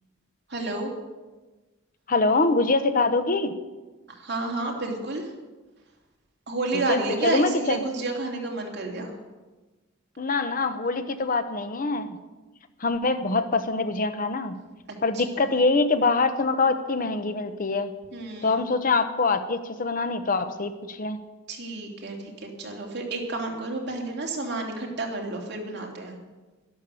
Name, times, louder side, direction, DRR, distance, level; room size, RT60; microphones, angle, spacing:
voice 1, 0.5-0.9 4.1-5.3 6.5-9.1 15.1-15.2 18.1-18.6 21.5-26.1, right 2 dB, 55° right, 0 dB, 2.9 m, -30 dB
voice 2, 2.1-3.5 6.9-7.8 10.2-12.2 12.8-14.6 15.0-17.9 18.4-21.2, left 3 dB, 40° left, 10 dB, 0.8 m, -24 dB
12.0 x 12.0 x 7.0 m, 1.2 s
head